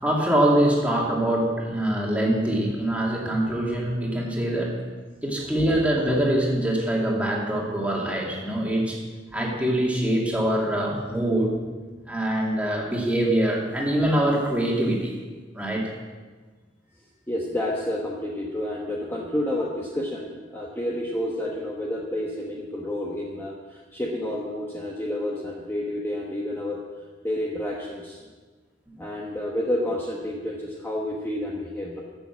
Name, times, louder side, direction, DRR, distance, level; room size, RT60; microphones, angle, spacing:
voice 1, 0.0-4.8 5.2-9.0 9.3-11.6 12.1-15.1 15.5-15.9, right 1 dB, 10° right, -3 dB, 2.4 m, -24 dB
voice 2, 17.3-26.8 27.2-28.2 29.0-32.0, left 1 dB, 15° left, -3 dB, 1.2 m, -30 dB
12.5 x 7.2 x 7.3 m, 1.4 s
head